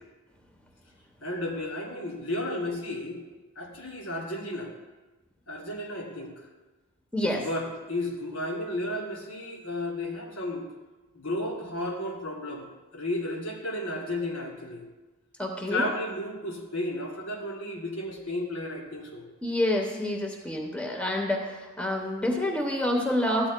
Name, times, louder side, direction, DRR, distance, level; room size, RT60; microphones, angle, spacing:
voice 1, 1.2-3.2 3.6-4.7 5.5-6.5 7.2-10.7 11.1-14.8 15.7-19.2, left 1 dB, 85° left, -1 dB, 2.2 m, -33 dB
voice 2, 7.1-7.4 15.4-15.9 19.4-23.5, left 1 dB, 5° left, 0 dB, 0.9 m, -28 dB
13.0 x 9.3 x 2.2 m, 1.2 s
head